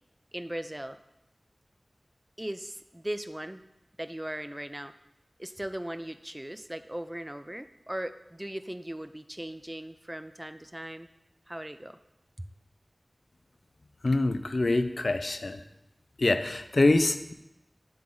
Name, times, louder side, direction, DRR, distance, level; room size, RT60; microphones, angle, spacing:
voice 1, 0.3-1.0 2.4-3.6 4.0-4.9 5.4-11.1 11.5-12.0 12.4-12.5, right 1 dB, 15° right, 11 dB, 0.3 m, -38 dB
voice 2, 14.0-15.6 16.2-17.3, left 2 dB, 70° left, 9 dB, 0.4 m, -25 dB
7.6 x 3.6 x 3.8 m, 0.88 s
wide cardioid pair, 50°, 0 cm